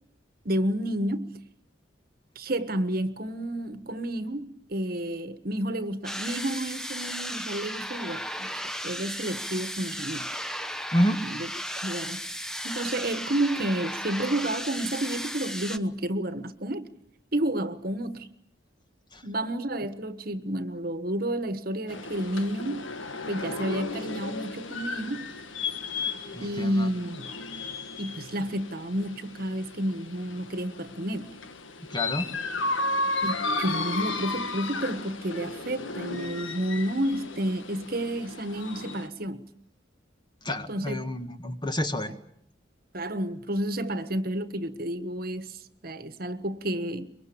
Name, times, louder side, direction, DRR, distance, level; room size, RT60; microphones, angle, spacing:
voice 1, 0.4-1.4 2.3-8.5 8.8-10.3 11.2-11.5 11.8-12.2 12.6-16.9 17.3-18.3 19.2-22.9 23.3-25.3 26.4-27.3 28.0-31.4 33.2-39.5 40.7-41.1 42.1-42.2 42.9-47.1, right 1 dB, 50° right, 1.4 m, -30 dB
sound 1, 6.0-15.8, equal, 5° left, 0.9 m, -35 dB
sound 2, 21.9-39.1, left 2 dB, 80° left, 1.7 m, -34 dB
voice 2, 26.3-26.9 31.9-32.3 40.4-42.1, equal, 20° left, 1.6 m, -28 dB
24.0 x 22.5 x 8.6 m
head